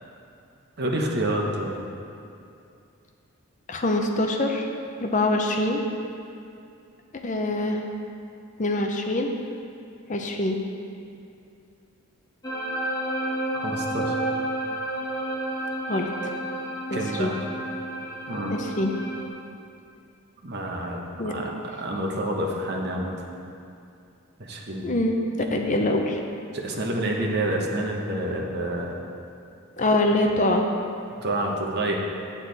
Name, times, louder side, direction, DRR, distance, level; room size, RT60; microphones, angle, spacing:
voice 1, 0.8-1.7 13.5-14.1 16.9-17.3 18.3-18.6 20.4-23.1 24.4-24.9 26.5-28.9 31.2-32.0, right 1 dB, 50° right, 0 dB, 1.0 m, -28 dB
voice 2, 3.7-4.7 5.0-5.8 7.2-7.8 8.6-9.3 10.1-10.6 15.9-16.3 16.9-17.3 18.5-18.9 21.2-21.3 24.8-25.2 25.5-26.2 29.8-30.6, left 1 dB, 35° left, 3 dB, 0.6 m, -24 dB
sound 1, 12.4-19.3, right 1 dB, 15° left, 1.0 m, -30 dB
8.4 x 8.3 x 4.0 m, 2.5 s
head